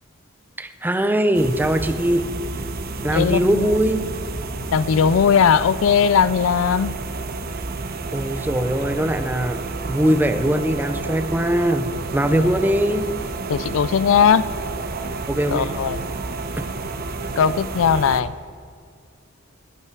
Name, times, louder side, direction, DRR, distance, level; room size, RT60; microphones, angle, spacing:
voice 1, 0.6-2.2 3.0-4.0 8.1-9.6 9.9-13.1 15.3-15.7 16.6-16.7, right 1 dB, 10° right, 9 dB, 0.6 m, -21 dB
sound 1, 1.3-18.2, right 3 dB, 50° right, 0.9 m, -30 dB
voice 2, 3.1-3.7 4.7-7.0 12.3-12.5 13.5-14.5 15.5-16.0 17.4-18.3, left 7 dB, 70° left, 18 dB, 0.4 m, -18 dB
21.0 x 8.9 x 4.7 m, 2.1 s
head